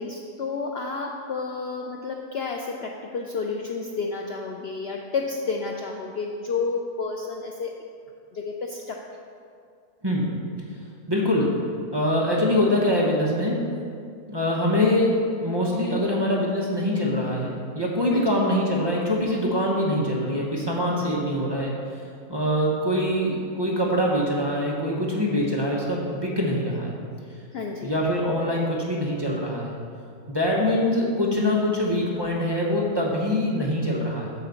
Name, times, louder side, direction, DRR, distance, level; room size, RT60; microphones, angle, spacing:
voice 1, 0.0-7.7 8.3-9.0 18.1-18.3 27.5-27.9, left 4 dB, 85° left, 1 dB, 0.5 m, -30 dB
voice 2, 11.1-11.6 11.9-13.6 14.3-21.8 22.3-27.0 27.8-29.8 30.3-34.3, left 1 dB, 20° right, -4 dB, 0.7 m, -24 dB
8.1 x 4.0 x 6.9 m, 2.4 s
omnidirectional pair, 1.7 m